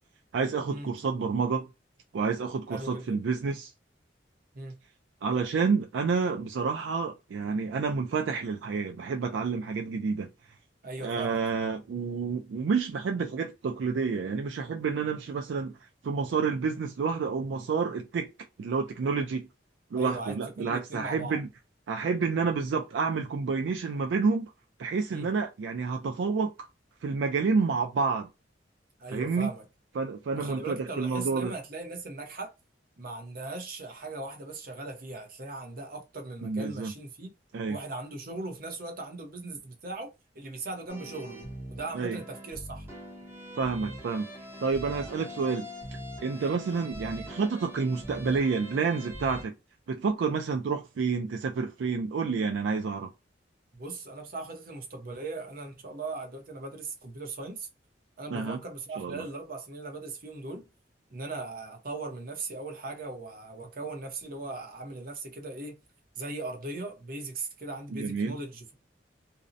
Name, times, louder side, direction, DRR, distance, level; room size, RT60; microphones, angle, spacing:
voice 1, 0.3-1.7 2.1-3.7 5.2-10.3 11.0-15.8 16.0-18.3 18.6-19.5 19.9-21.5 21.9-24.5 24.8-26.7 27.0-28.3 29.1-29.5 30.0-31.5 36.4-36.9 37.5-37.8 41.9-42.2 43.6-44.3 44.6-45.7 46.2-49.5 49.9-53.1 58.3-58.6 59.0-59.2 67.9-68.3, right 5 dB, 75° right, 0.4 m, -29 dB
voice 2, 2.7-3.2 4.5-4.8 10.8-11.4 19.9-21.4 25.1-25.3 29.0-29.6 30.3-32.5 33.0-37.3 37.7-42.9 46.4-46.6 53.7-57.7 58.2-60.7 61.1-65.8 66.2-68.8, right 2 dB, 50° right, 0.8 m, -39 dB
sound 1, 40.9-49.4, equal, 15° right, 0.7 m, -42 dB
2.6 x 2.0 x 2.5 m
head